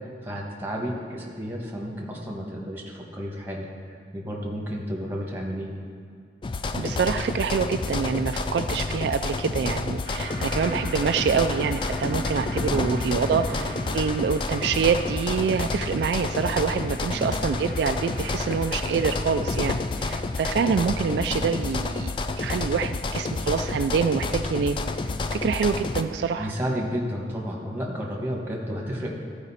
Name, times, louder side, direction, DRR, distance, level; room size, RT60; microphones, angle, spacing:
voice 1, 0.0-5.7 12.7-12.9 13.3-13.4 17.1-17.3 21.3-21.5 26.3-29.1, equal, 10° right, -2 dB, 1.2 m, -32 dB
sound 1, 6.4-26.0, left 3 dB, 30° left, 0.3 m, -29 dB
voice 2, 6.7-24.8 25.3-26.5, right 6 dB, 70° right, 8 dB, 0.3 m, -26 dB
sound 2, 10.0-21.2, right 1 dB, 55° left, 1.3 m, -41 dB
13.0 x 4.9 x 4.2 m, 2.3 s
head